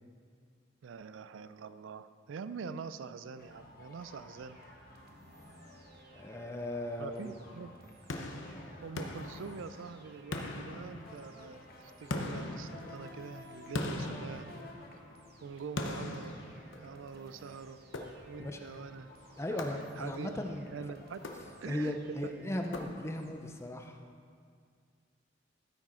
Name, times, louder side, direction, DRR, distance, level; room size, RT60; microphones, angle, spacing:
voice 1, 0.8-4.6 7.0-7.9 8.8-14.5 15.4-16.4 16.8-17.8 18.3-19.1 19.5-19.6 20.0-20.4 20.7-21.2 21.6-22.4, right 5 dB, 85° right, 13 dB, 0.4 m, -44 dB
sound 1, 3.4-22.0, left 2 dB, 50° left, 1.1 m, -55 dB
sound 2, 4.4-23.3, right 2 dB, 55° right, 0.9 m, -59 dB
voice 2, 6.1-7.3 18.4-18.6 19.4-20.7 21.7-24.0, left 1 dB, 15° left, 4 dB, 0.5 m, -37 dB
sound 3, 8.1-9.9 10.3-11.5 12.1-15.1 15.8-17.2 17.9-18.6 19.6-20.3 21.1-21.9 22.7-23.4, left 2 dB, 80° left, 0.8 m, -41 dB
13.5 x 6.1 x 4.3 m, 2.1 s
head